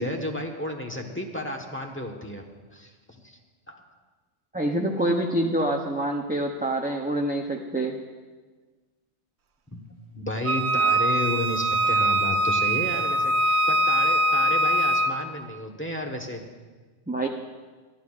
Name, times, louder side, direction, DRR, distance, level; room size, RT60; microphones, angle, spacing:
voice 1, 0.0-3.4 3.7-3.8 5.1-5.4 9.7-9.8 10.1-16.4, left 1 dB, 10° left, 2 dB, 1.2 m, -32 dB
voice 2, 4.5-8.0 17.1-17.3, right 1 dB, 10° right, 1 dB, 0.6 m, -26 dB
Wind instrument woodwind instrument, 10.5-15.2, right 1 dB, 70° right, 1.0 m, -22 dB
27.5 x 11.5 x 2.5 m, 1.4 s
omnidirectional pair, 1.2 m